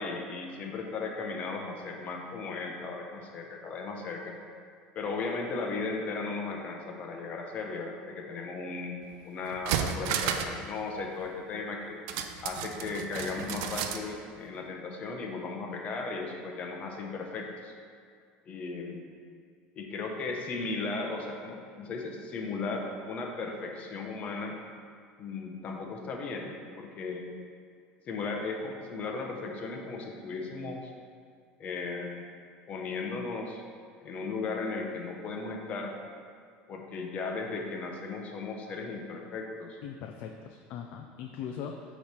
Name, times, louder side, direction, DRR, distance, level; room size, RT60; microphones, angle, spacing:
voice 1, 0.0-4.4 4.9-12.0 12.4-17.7 18.5-19.1 19.8-24.6 25.2-27.3 28.1-30.9 31.6-32.3 32.7-33.6 34.0-35.9 36.7-39.8, left 3 dB, 35° left, 1 dB, 0.8 m, -36 dB
sound 1, 9.0-9.1 9.5-10.6 10.9-11.0 12.1-14.0 14.4-14.5, right 8 dB, 75° right, 0.4 m, -32 dB
voice 2, 39.8-41.8, left 8 dB, 60° left, 3 dB, 0.4 m, -40 dB
8.3 x 3.2 x 4.4 m, 2.2 s
cardioid pair, 155°, 4 cm